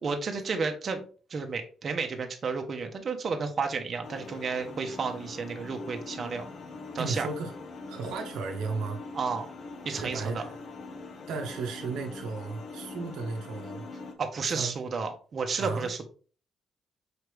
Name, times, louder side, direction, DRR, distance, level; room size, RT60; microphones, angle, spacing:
voice 1, 0.0-6.5 6.9-7.3 9.1-9.5 9.8-10.4 14.2-16.0, right 5 dB, 45° right, 0.8 m, -32 dB
sound 1, 4.0-14.1, left 3 dB, 55° left, 0.7 m, -43 dB
voice 2, 7.0-7.5 7.9-9.0 9.9-10.6 11.3-13.9 14.5-14.7 15.6-15.9, right 4 dB, 90° right, 0.8 m, -34 dB
4.9 x 3.2 x 3.2 m
cardioid pair, 90°, 0 cm